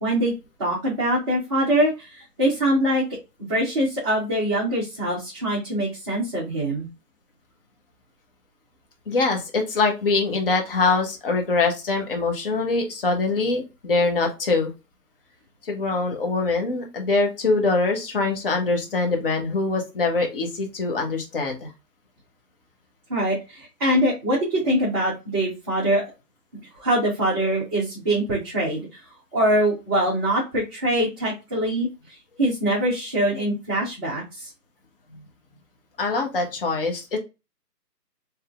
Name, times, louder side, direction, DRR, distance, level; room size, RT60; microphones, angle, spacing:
voice 1, 0.0-0.3 0.6-3.0 3.5-6.9 23.1-26.0 26.8-28.9 29.3-31.9 32.4-34.5, right 1 dB, 15° right, -7 dB, 0.8 m, -23 dB
voice 2, 9.1-14.7 15.6-21.7 35.1-35.2 36.0-37.2, left 3 dB, 35° left, 3 dB, 1.1 m, -23 dB
5.0 x 3.2 x 2.4 m, 0.26 s
figure-of-eight pair, 150°, 49 cm